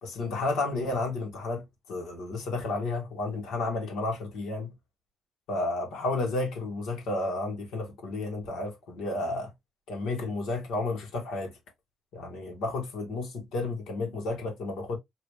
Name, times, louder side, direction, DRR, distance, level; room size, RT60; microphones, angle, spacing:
voice 1, 0.0-4.7 5.5-9.5 9.9-11.6 12.1-15.0, left 2 dB, 85° left, 1.7 m, -32 dB
3.0 x 2.9 x 3.1 m
cardioid pair, 90°, 0 cm